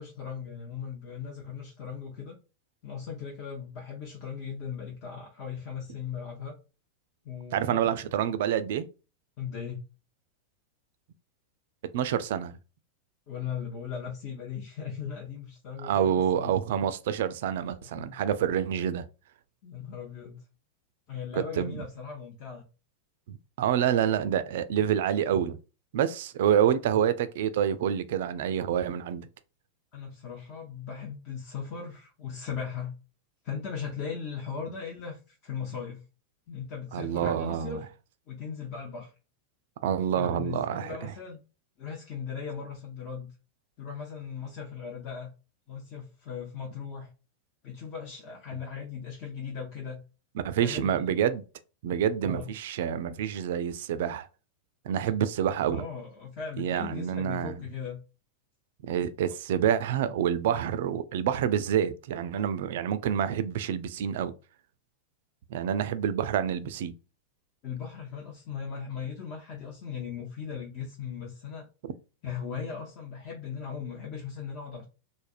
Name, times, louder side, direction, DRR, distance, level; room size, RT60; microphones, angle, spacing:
voice 1, 0.0-2.4 2.8-6.6 7.2-7.9 9.4-9.8 13.3-16.5 17.8-18.2 19.6-20.4 21.1-22.7 29.9-32.9 33.4-36.1 36.5-37.8 38.3-39.1 40.2-41.4 41.8-43.3 43.8-45.3 45.7-47.1 47.6-50.0 50.6-51.0 52.3-52.5 55.7-58.0 67.6-71.7 72.2-74.8, left 7 dB, 40° left, 0.7 m, -38 dB
voice 2, 7.5-8.9 11.9-12.6 15.8-19.0 21.6-21.8 23.3-25.6 25.9-29.3 36.9-37.8 39.8-41.1 50.4-51.4 51.8-54.3 54.9-55.9 56.6-57.6 58.8-64.3 65.5-66.9, right 9 dB, 55° right, 0.3 m, -27 dB
3.3 x 2.1 x 2.4 m
figure-of-eight pair, 90°, 0 cm